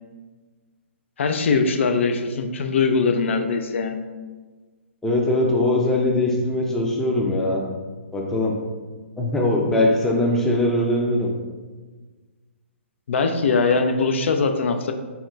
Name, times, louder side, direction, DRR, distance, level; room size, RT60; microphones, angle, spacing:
voice 1, 1.2-4.1 13.1-14.9, left 4 dB, 65° left, 6 dB, 0.4 m, -21 dB
voice 2, 5.0-7.6 8.1-8.5 9.2-11.3, left 1 dB, 5° left, -1 dB, 0.4 m, -21 dB
4.2 x 2.2 x 3.7 m, 1.4 s
hypercardioid pair, 140°, 7 cm